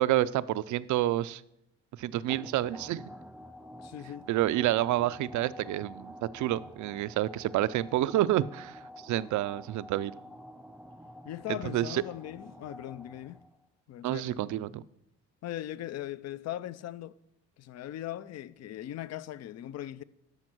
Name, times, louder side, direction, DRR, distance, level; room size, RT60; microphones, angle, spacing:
voice 1, 0.0-1.4 2.0-3.0 4.3-10.1 11.5-12.0 14.0-14.8, right 14 dB, 75° right, 0.5 m, -29 dB
sound 1, 2.3-13.7, equal, 5° right, 0.3 m, -49 dB
voice 2, 3.8-4.3 11.2-13.4 13.9-14.4 15.4-17.1 17.6-20.0, left 13 dB, 60° left, 0.5 m, -39 dB
12.5 x 5.3 x 6.1 m
cardioid pair, 90°, 30 cm